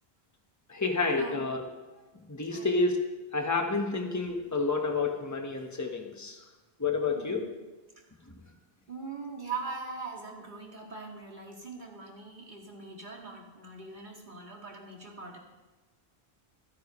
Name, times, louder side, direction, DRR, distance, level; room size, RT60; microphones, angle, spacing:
voice 1, 0.7-1.6 2.3-3.0 3.3-6.4 6.8-7.4, left 3 dB, 15° left, 2 dB, 1.3 m, -29 dB
voice 2, 7.1-7.5 8.9-15.4, right 4 dB, 50° right, -1 dB, 2.5 m, -41 dB
25.5 x 10.5 x 3.2 m, 1.2 s
omnidirectional pair, 1.0 m